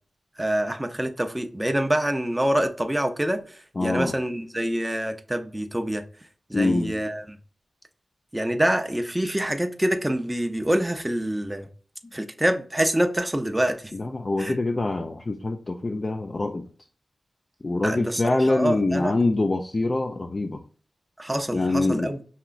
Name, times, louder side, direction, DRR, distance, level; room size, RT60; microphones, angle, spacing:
voice 1, 0.4-3.4 3.8-6.0 6.5-7.2 8.3-11.7 12.1-13.8 14.4-14.6 17.8-18.2 18.5-19.1 21.2-22.2, right 1 dB, 10° right, 0.5 m, -25 dB
voice 2, 3.8-4.1 6.5-7.0 13.9-16.7 17.6-20.6 21.5-22.1, left 2 dB, 40° left, 0.4 m, -25 dB
5.6 x 3.0 x 2.4 m
wide cardioid pair, 75°, 0 cm